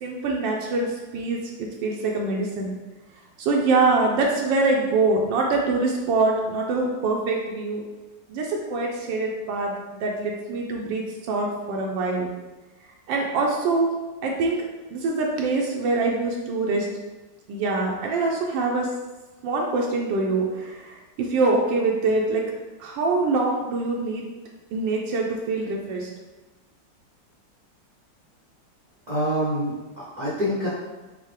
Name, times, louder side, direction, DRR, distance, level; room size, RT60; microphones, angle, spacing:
voice 1, 0.0-2.7 3.4-7.8 8.3-9.7 10.0-12.3 13.1-13.9 14.2-14.6 14.9-16.9 17.5-18.9 19.4-22.4 22.8-24.2 24.7-26.1, right 3 dB, 80° right, -1 dB, 1.2 m, -24 dB
voice 2, 29.1-30.7, equal, 55° right, -9 dB, 0.4 m, -26 dB
5.5 x 2.0 x 3.2 m, 1.2 s
omnidirectional pair, 2.0 m